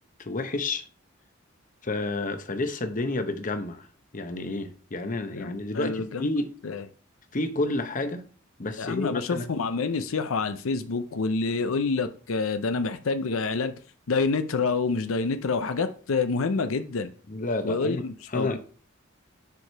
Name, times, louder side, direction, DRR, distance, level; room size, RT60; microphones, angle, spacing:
voice 1, 0.2-0.8 1.8-3.9 4.1-6.5 7.3-8.3 8.6-9.5 17.3-18.1 18.3-18.6, left 2 dB, 40° left, 0.8 m, -30 dB
voice 2, 5.4-6.3 6.6-6.9 8.8-13.8 14.1-17.1 17.6-18.6, left 4 dB, 85° left, 0.6 m, -27 dB
7.0 x 4.9 x 4.5 m
head